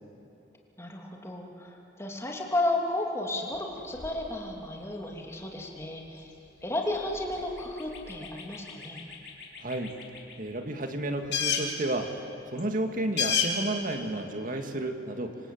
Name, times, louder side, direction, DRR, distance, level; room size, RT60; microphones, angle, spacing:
voice 1, 0.8-6.3 6.6-9.0, left 1 dB, 15° left, 0 dB, 3.1 m, -33 dB
sound 1, 3.5-10.8 11.1-14.2, left 6 dB, 70° left, 3.6 m, -35 dB
voice 2, 9.6-9.9 10.4-12.2 12.5-15.4, right 1 dB, 50° right, 5 dB, 2.1 m, -31 dB
27.0 x 25.5 x 8.6 m, 3.0 s
head